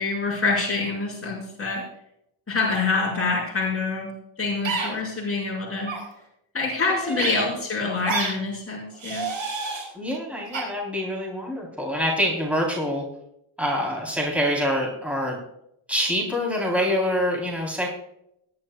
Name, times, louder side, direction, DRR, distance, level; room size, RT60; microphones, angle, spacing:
voice 1, 0.0-1.8 2.5-4.1 4.4-5.9 6.5-9.3, left 3 dB, 25° left, -4 dB, 5.4 m, -26 dB
sound 1, 4.6-4.9 5.8-6.0 7.2-7.3 8.0-8.3 9.0-9.8 10.5-10.6, right 4 dB, 70° right, 4.7 m, -28 dB
voice 2, 7.0-7.5 10.0-13.0 13.6-15.4 15.9-17.9, equal, 5° right, -2 dB, 3.7 m, -26 dB
20.5 x 11.0 x 2.4 m, 0.78 s
cardioid pair, 105°, 49 cm